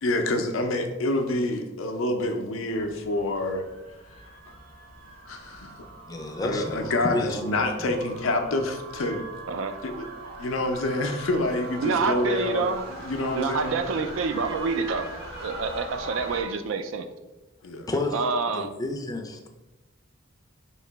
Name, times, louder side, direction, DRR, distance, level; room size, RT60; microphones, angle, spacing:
voice 1, 0.0-3.6 5.3-5.7 6.4-9.2 9.8-10.1 10.4-12.7 13.0-13.7 17.6-17.9, left 2 dB, 90° left, 5 dB, 0.5 m, -27 dB
sound 1, 2.7-16.4, right 2 dB, 55° right, 1.4 m, -41 dB
voice 2, 6.1-7.4 7.8-7.9 17.9-19.5, left 2 dB, 20° left, 3 dB, 0.4 m, -31 dB
voice 3, 9.5-9.8 11.8-12.8 13.3-17.1 18.1-18.7, right 4 dB, 75° right, 9 dB, 0.4 m, -27 dB
3.1 x 2.8 x 4.5 m, 1.1 s
head